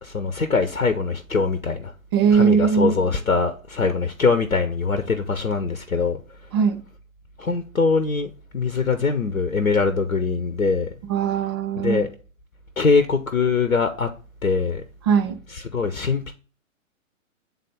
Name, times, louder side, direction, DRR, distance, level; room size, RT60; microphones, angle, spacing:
voice 1, 0.0-1.9 2.3-6.2 7.4-10.9 11.8-12.2 12.8-14.1 14.4-14.8 15.5-16.3, left 4 dB, 80° left, 0.8 m, -22 dB
voice 2, 2.1-3.0 6.5-6.8 11.0-12.0 15.1-15.4, right 6 dB, 20° right, 0.5 m, -19 dB
8.3 x 3.8 x 3.6 m
figure-of-eight pair, 115°, 40 cm